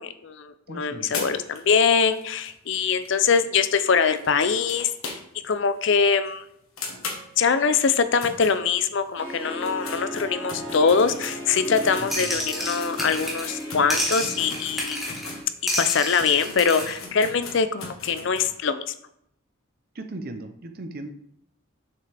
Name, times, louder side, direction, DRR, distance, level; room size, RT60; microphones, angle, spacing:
voice 1, 0.0-4.9 5.4-6.4 7.4-15.0 15.8-18.9, left 5 dB, 60° left, 11 dB, 0.5 m, -23 dB
voice 2, 0.7-1.1 12.0-12.4 19.9-21.1, right 2 dB, 45° right, 7 dB, 0.6 m, -37 dB
sound 1, 1.1-5.5 5.8-5.9 6.2-6.3 6.8-9.1 9.5-15.4 15.9-16.0 16.2-18.5, left 4 dB, 85° left, 1.4 m, -38 dB
Harp, 9.2-15.4, equal, 25° right, 1.6 m, -37 dB
sound 2, 12.1-13.6 13.9-15.3 15.7-17.0, equal, ahead, 1.3 m, -30 dB
6.6 x 5.7 x 3.4 m, 0.71 s
head